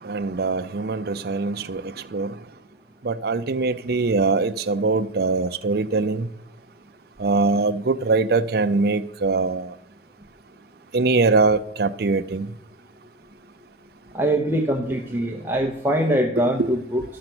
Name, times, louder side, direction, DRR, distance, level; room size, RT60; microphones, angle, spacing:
voice 1, 0.0-2.3 3.0-6.3 7.2-9.7 10.9-12.5 16.6-16.7, right 3 dB, 55° right, 0.5 m, -22 dB
voice 2, 14.1-17.0, right 1 dB, 10° right, 0.7 m, -23 dB
13.0 x 6.6 x 6.1 m
head